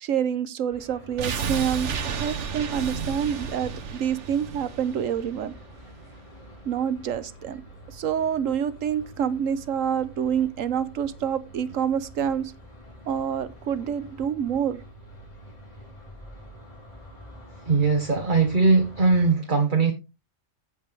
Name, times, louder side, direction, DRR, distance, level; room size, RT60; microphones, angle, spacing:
voice 1, 0.0-5.5 6.7-7.6 7.9-12.5 13.1-14.8, right 8 dB, 85° right, 1.3 m, -27 dB
sound 1, 0.7-19.3, equal, 30° left, 3.7 m, -47 dB
sound 2, 1.2-6.1 6.4-6.5, right 6 dB, 65° right, 1.3 m, -32 dB
voice 2, 17.6-19.9, right 4 dB, 40° right, 1.4 m, -20 dB
15.5 x 5.3 x 3.3 m
omnidirectional pair, 1.3 m